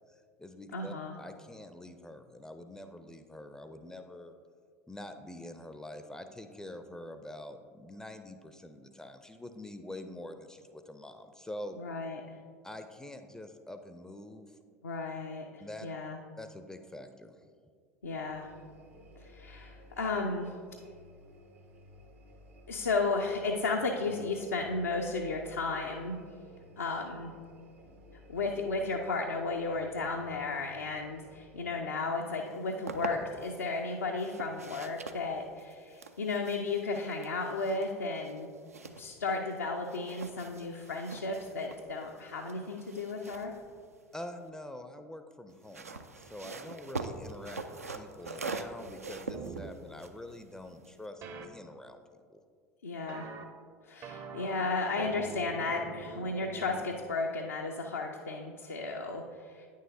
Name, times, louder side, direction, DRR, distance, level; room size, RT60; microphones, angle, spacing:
voice 1, 0.1-4.3 4.9-11.8 12.6-14.5 15.6-15.9 16.4-17.3 44.1-52.4, left 1 dB, 5° left, 8 dB, 0.4 m, -46 dB
voice 2, 0.7-1.1 11.8-12.4 14.8-16.2 18.0-18.5 19.2-20.5 22.7-26.2 26.8-27.3 28.3-38.5 39.0-43.5 52.8-53.3 53.8-59.7, left 3 dB, 80° left, 1 dB, 0.4 m, -34 dB
sound 1, 18.3-31.9, equal, 70° right, 0.8 m, -55 dB
sound 2, 32.5-33.6 34.2-39.6 39.8-44.5 45.5-51.1, right 3 dB, 85° right, 0.3 m, -43 dB
sound 3, 49.3-49.7 51.2-51.5 53.1-53.4 54.0-56.8, right 4 dB, 40° right, 0.6 m, -43 dB
9.0 x 6.4 x 2.6 m, 2.1 s
figure-of-eight pair, 75°, 8 cm